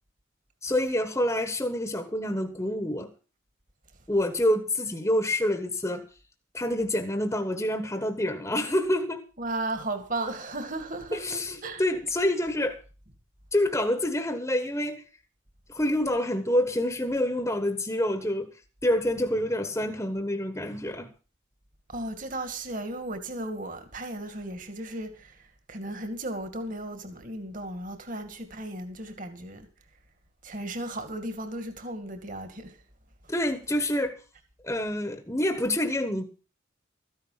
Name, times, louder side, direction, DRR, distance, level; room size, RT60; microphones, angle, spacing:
voice 1, 0.6-3.1 4.1-6.0 6.5-9.2 11.1-12.8 13.5-15.0 15.7-18.5 18.8-21.1 33.3-34.1 34.6-36.2, left 1 dB, 15° left, 1.3 m, -27 dB
voice 2, 9.4-11.8 21.9-29.7 30.4-32.8 33.2-33.3, right 2 dB, 40° right, 2.2 m, -35 dB
14.0 x 10.5 x 5.7 m
head